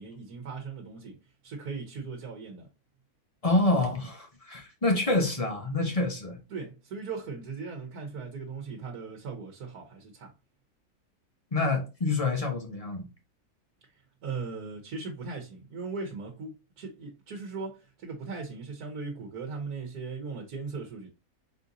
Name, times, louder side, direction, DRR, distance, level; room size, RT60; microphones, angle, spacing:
voice 1, 0.0-2.7 6.5-10.3 13.8-21.1, right 4 dB, 85° right, 1.4 m, -38 dB
voice 2, 3.4-6.4 11.5-13.0, left 2 dB, 25° left, 1.1 m, -27 dB
4.4 x 3.8 x 2.6 m
omnidirectional pair, 1.6 m